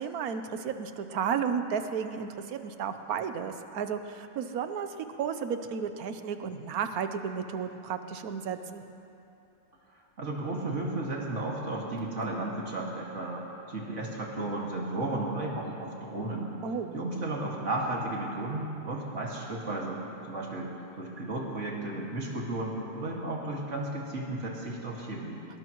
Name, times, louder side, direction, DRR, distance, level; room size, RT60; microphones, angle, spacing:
voice 1, 0.0-4.9 5.2-8.8 16.6-17.0, right 7 dB, 80° right, 8 dB, 1.3 m, -33 dB
voice 2, 10.2-16.5 16.9-20.0 20.3-25.4, right 2 dB, 55° right, -2 dB, 2.4 m, -34 dB
21.0 x 19.0 x 3.1 m, 2.8 s
omnidirectional pair, 1.5 m